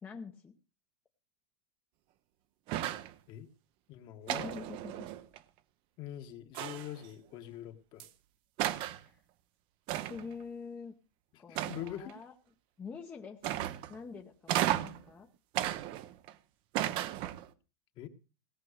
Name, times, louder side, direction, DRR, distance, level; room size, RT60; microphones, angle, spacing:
voice 1, 0.0-0.5 4.3-5.1 9.0-9.2 10.1-11.0 11.4-12.3 12.8-13.4 13.9-15.3, left 5 dB, 15° left, 3 dB, 0.8 m, -45 dB
sound 1, 2.7-3.1 4.3-5.4 6.5-7.1 8.0-8.1 8.6-9.0 9.9-10.3 11.5-12.1 13.4-14.0 14.5-15.0 15.5-16.3 16.7-17.5, right 13 dB, 40° right, 0.7 m, -34 dB
voice 2, 3.9-4.6 6.0-8.1 11.3-12.1 18.0-18.1, left 11 dB, 35° left, 8 dB, 1.3 m, -44 dB
17.5 x 5.9 x 6.5 m, 0.34 s
supercardioid pair, 150°, 14 cm